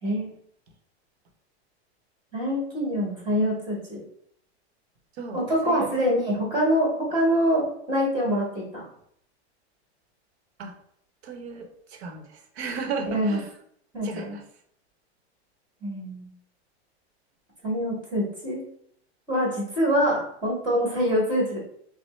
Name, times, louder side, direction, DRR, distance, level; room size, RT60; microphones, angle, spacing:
voice 1, 2.3-4.0 5.3-8.9 13.0-13.4 13.9-14.4 15.8-16.3 17.6-18.6 19.3-21.6, equal, 15° right, -3 dB, 1.4 m, -25 dB
voice 2, 11.2-12.3 12.6-13.5 14.0-14.4, right 5 dB, 70° right, 5 dB, 0.9 m, -34 dB
6.1 x 2.0 x 3.1 m, 0.69 s
supercardioid pair, 165°, 34 cm